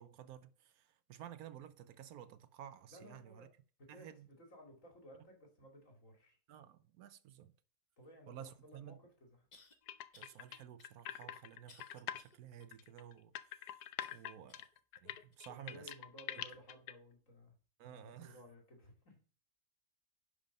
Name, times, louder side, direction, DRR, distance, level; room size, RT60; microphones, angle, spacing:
voice 1, 0.0-3.5 3.9-4.3 6.5-7.5 8.3-9.0 10.2-14.7 15.0-15.9 16.3-16.5 17.8-18.4, right 10 dB, 75° right, 1.1 m, -53 dB
voice 2, 2.9-3.5 3.8-6.4 8.0-9.5 14.3-14.5 15.4-17.5 17.8-19.2, equal, 55° left, 2.9 m, -58 dB
sound 1, 9.5-9.8 10.1-10.4 10.8-12.4 12.9-13.0 14.0-14.7 15.3-15.4 16.2-16.3, left 3 dB, 30° left, 1.0 m, -64 dB
sound 2, 9.9-12.2 12.6-16.9, left 11 dB, 90° left, 1.2 m, -45 dB
10.5 x 5.1 x 5.3 m
omnidirectional pair, 1.6 m